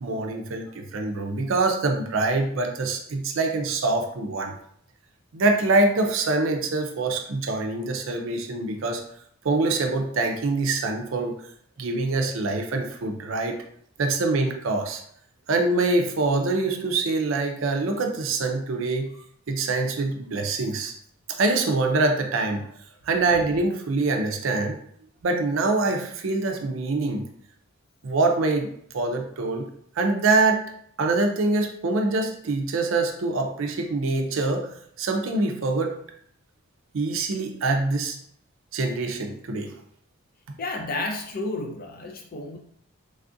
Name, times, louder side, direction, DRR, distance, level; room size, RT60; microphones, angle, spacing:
voice 1, 0.0-4.5 5.3-9.0 9.4-11.3 11.8-13.6 14.0-15.0 15.5-19.1 19.5-20.9 21.3-22.6 23.1-24.8 25.2-27.2 28.0-28.7 28.9-29.7 30.0-30.6 31.0-35.9 36.9-38.2 38.7-39.7, right 3 dB, 65° right, 3 dB, 0.4 m, -24 dB
voice 2, 40.6-42.6, left 2 dB, 40° left, 2 dB, 0.4 m, -31 dB
3.3 x 2.4 x 2.6 m, 0.65 s
head